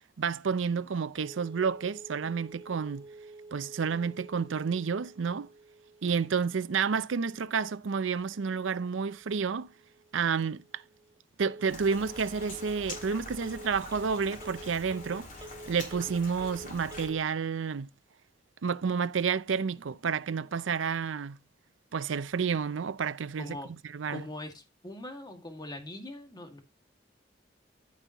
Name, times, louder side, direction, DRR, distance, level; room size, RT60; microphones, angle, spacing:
voice 1, 0.2-3.1 3.5-5.5 6.0-9.7 10.1-10.8 11.4-15.3 15.7-17.9 18.6-21.4 21.9-23.6 23.9-24.2, right 6 dB, 90° right, 0.5 m, -30 dB
Telephone, 1.1-17.2, right 1 dB, 20° right, 1.1 m, -50 dB
Rain, 11.7-17.1, left 2 dB, 45° left, 3.1 m, -45 dB
voice 2, 23.4-23.7 24.1-26.6, left 1 dB, 20° left, 2.0 m, -41 dB
14.0 x 5.4 x 2.9 m
head